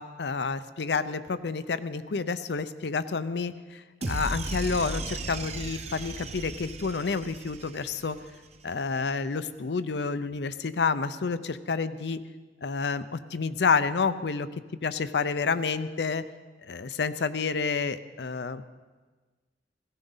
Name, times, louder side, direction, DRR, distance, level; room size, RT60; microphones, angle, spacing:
voice 1, 0.0-8.2 8.6-12.2 12.6-14.5 14.8-16.2 16.6-18.7, left 4 dB, 70° left, 13 dB, 0.6 m, -29 dB
sound 1, 4.0-8.3, right 2 dB, 40° right, 0.8 m, -36 dB
17.0 x 16.0 x 4.0 m, 1.3 s
head